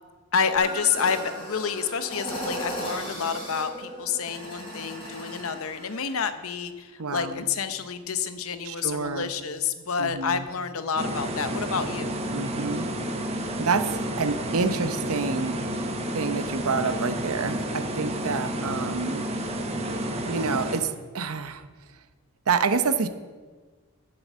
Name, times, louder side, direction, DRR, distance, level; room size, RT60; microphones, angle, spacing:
voice 1, 0.3-12.2, left 6 dB, 75° left, 10 dB, 0.8 m, -29 dB
sound 1, 0.6-6.2, equal, 25° left, 4.2 m, -36 dB
voice 2, 7.0-7.4 8.6-9.3 10.0-10.5 12.3-12.9 13.6-15.6 16.1-19.3 20.3-21.6 22.5-23.1, right 4 dB, 85° right, 11 dB, 0.8 m, -28 dB
sound 2, 11.0-20.8, right 1 dB, 30° right, 1.0 m, -30 dB
8.9 x 7.8 x 7.4 m, 1.4 s
head